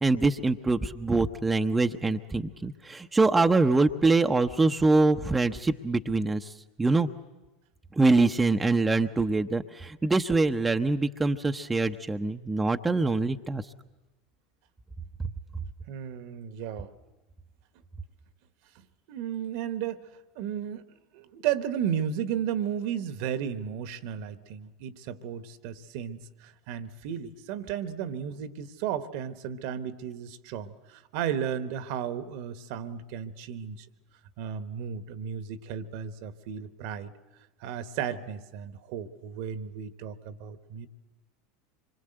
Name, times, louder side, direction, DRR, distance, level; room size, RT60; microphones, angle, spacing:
voice 1, 0.0-6.5 6.8-7.1 8.0-13.6, right 3 dB, 15° right, 5 dB, 0.9 m, -24 dB
voice 2, 15.9-16.9 19.1-20.1 20.3-20.9 21.1-33.9 34.4-37.1 37.6-40.9, right 9 dB, 60° right, 12 dB, 1.3 m, -34 dB
25.5 x 23.5 x 7.9 m, 1.1 s
figure-of-eight pair, 80°, 0 cm